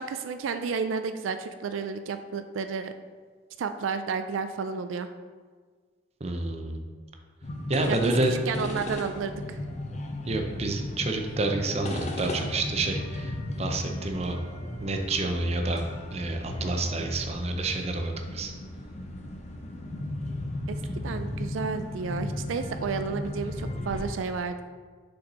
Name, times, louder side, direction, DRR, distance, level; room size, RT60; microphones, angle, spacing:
voice 1, 0.0-2.9 3.6-5.1 7.9-8.1 8.5-9.6 20.7-20.8 21.0-24.6, right 5 dB, 85° right, 9 dB, 0.4 m, -31 dB
voice 2, 6.2-6.8 7.7-8.3 10.3-14.4 14.8-15.8 16.1-18.5, right 2 dB, 30° right, 4 dB, 0.6 m, -29 dB
sound 1, 7.4-24.1, left 1 dB, 35° left, 0.6 m, -36 dB
sound 2, 13.9-24.0, left 1 dB, 80° left, 1.4 m, -46 dB
6.5 x 4.3 x 4.2 m, 1.5 s
head